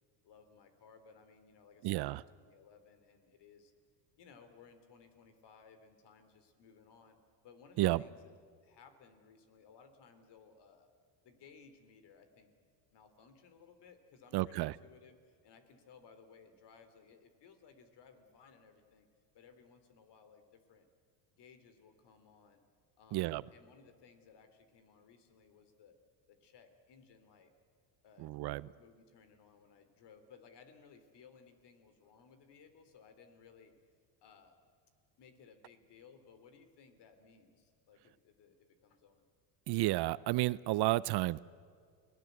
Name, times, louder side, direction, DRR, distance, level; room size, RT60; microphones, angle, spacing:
voice 1, 0.2-3.7 4.2-7.2 7.4-8.3 8.6-10.9 11.2-12.5 12.9-19.1 19.3-20.9 21.4-22.6 23.0-26.0 26.3-27.5 28.0-28.3 28.6-33.7 34.2-34.6 35.2-39.2, left 6 dB, 55° left, 10 dB, 3.3 m, -60 dB
voice 2, 1.8-2.2 7.8-8.0 14.3-14.8 23.1-23.4 28.2-28.7 39.7-41.4, right 18 dB, 50° right, 20 dB, 0.6 m, -31 dB
30.0 x 19.0 x 8.0 m, 2.1 s
supercardioid pair, 100°, 49 cm